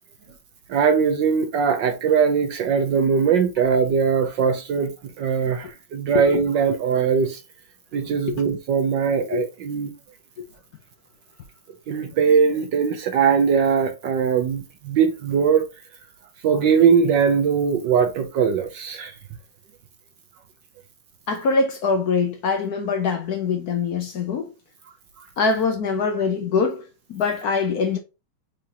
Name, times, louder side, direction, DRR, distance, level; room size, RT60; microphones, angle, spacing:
voice 1, 0.7-4.9 5.2-7.4 7.9-9.9 11.9-15.7 16.4-19.2 25.2-25.3, right 6 dB, 70° right, 1.2 m, -20 dB
voice 2, 21.3-24.5 25.4-28.0, left 4 dB, 70° left, 0.9 m, -23 dB
4.6 x 3.8 x 2.8 m
omnidirectional pair, 2.4 m